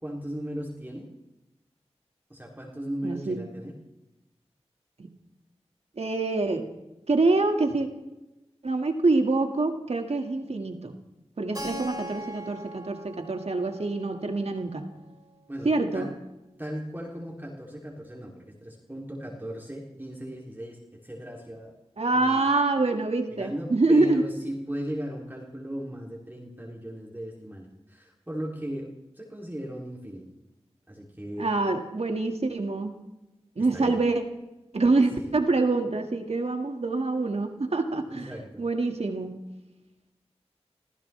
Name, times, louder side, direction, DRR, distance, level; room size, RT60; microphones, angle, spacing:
voice 1, 0.0-1.1 2.3-3.7 15.5-16.1 16.6-21.7 22.1-22.5 23.3-30.3 30.9-31.5 33.7-34.0 38.1-38.6, equal, 15° right, -3 dB, 3.1 m, -37 dB
voice 2, 3.0-3.4 5.0-5.1 6.0-6.7 7.1-7.9 8.6-11.0 11.4-14.9 15.6-16.1 22.0-24.2 31.4-33.0 33.6-34.2 34.7-38.3 38.6-39.5, right 3 dB, 65° right, 4 dB, 2.0 m, -25 dB
Keyboard (musical), 11.5-16.1, equal, 35° right, 3.8 m, -42 dB
27.0 x 15.0 x 3.4 m, 0.98 s
cardioid pair, 45°, 11 cm